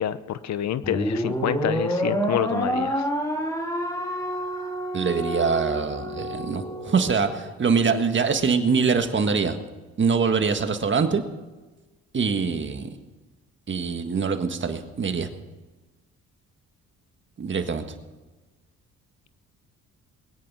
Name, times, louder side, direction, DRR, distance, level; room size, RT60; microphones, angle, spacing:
voice 1, 0.0-3.0, left 10 dB, 65° left, 15 dB, 0.8 m, -27 dB
sound 1, 0.8-7.3, equal, 10° left, 2.5 m, -28 dB
voice 2, 4.9-9.6 10.0-11.2 12.1-12.9 13.7-15.3 17.4-17.8, right 5 dB, 40° right, 7 dB, 1.7 m, -24 dB
21.0 x 9.9 x 5.6 m, 1.2 s
cardioid pair, 90°, 30 cm